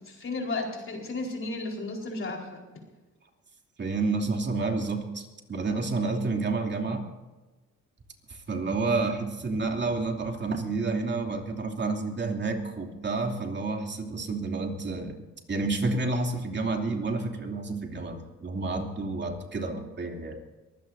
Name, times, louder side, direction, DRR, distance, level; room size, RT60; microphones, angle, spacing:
voice 1, 0.0-2.6 19.6-19.8, left 2 dB, 45° left, 0 dB, 4.4 m, -34 dB
voice 2, 3.8-7.0 8.5-15.2 15.5-20.4, right 3 dB, 35° right, 2 dB, 2.9 m, -29 dB
23.0 x 16.0 x 2.7 m, 1.2 s
cardioid pair, 90°, 30 cm